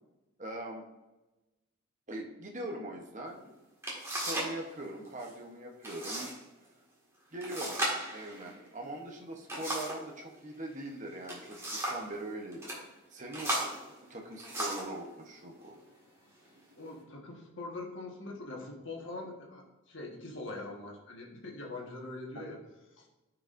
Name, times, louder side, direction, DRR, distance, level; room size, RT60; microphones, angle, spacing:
voice 1, 0.4-0.9 2.1-3.6 4.0-6.3 7.3-7.8 8.1-12.7 13.1-13.8 14.1-15.8, right 1 dB, 35° right, 1 dB, 0.9 m, -41 dB
sound 1, 3.3-3.4 3.8-4.6 4.8-5.3 5.8-6.3 6.6-6.7 7.4-10.1 11.0-12.1 12.5-12.8 13.3-15.0 15.7-15.9 16.4-16.9, right 1 dB, 15° right, 1.8 m, -36 dB
voice 2, 16.8-22.6 23.0-23.1, left 2 dB, 60° left, -1 dB, 1.4 m, -43 dB
13.5 x 4.8 x 2.6 m, 1.0 s
head